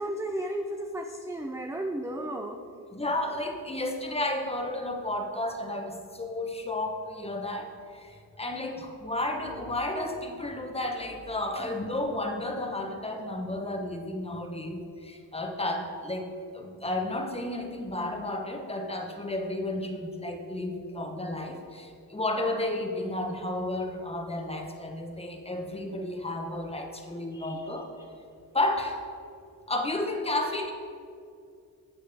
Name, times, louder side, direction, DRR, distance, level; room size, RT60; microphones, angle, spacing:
voice 1, 0.0-2.6 11.6-11.8 27.3-27.6 28.0-28.1, right 1 dB, 10° right, 4 dB, 0.5 m, -34 dB
voice 2, 2.9-27.9 28.5-29.0 29.7-30.7, left 1 dB, 15° left, 3 dB, 1.1 m, -32 dB
11.5 x 7.6 x 3.5 m, 2.4 s
cardioid pair, 95°, 39 cm